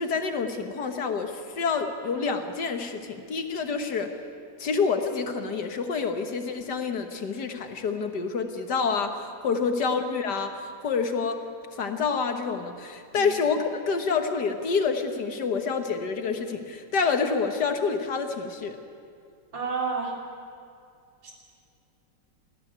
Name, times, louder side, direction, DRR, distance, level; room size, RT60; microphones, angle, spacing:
voice 1, 0.0-4.1 4.6-11.4 11.7-18.8, left 5 dB, 65° left, 6 dB, 1.9 m, -28 dB
voice 2, 19.5-20.1 21.2-21.3, right 4 dB, 80° right, -1 dB, 4.1 m, -30 dB
19.5 x 14.0 x 9.4 m, 2.4 s
omnidirectional pair, 2.0 m